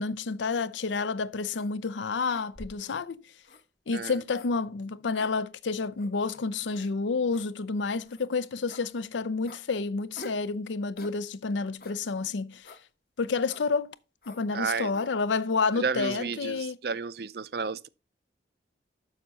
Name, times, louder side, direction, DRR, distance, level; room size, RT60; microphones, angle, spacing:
voice 1, 0.0-3.2 3.9-12.7 13.2-13.9 14.3-16.8, left 4 dB, 80° left, 0.5 m, -29 dB
sound 1, 0.9-1.1 1.5-1.7 2.3-2.9 3.4-3.6 4.3-4.5 5.1-5.3 6.0-6.1 6.7-6.9 7.3-7.5 8.0-8.3 8.7-8.9 9.4-9.6 10.2-10.5 11.0-11.2 11.8-12.0 12.6-12.8 13.5-13.7 14.2-14.5 14.9-15.1, left 2 dB, 50° left, 1.1 m, -47 dB
voice 2, 14.5-15.0 15.7-17.9, right 5 dB, 55° right, 0.5 m, -32 dB
7.1 x 6.4 x 5.6 m
head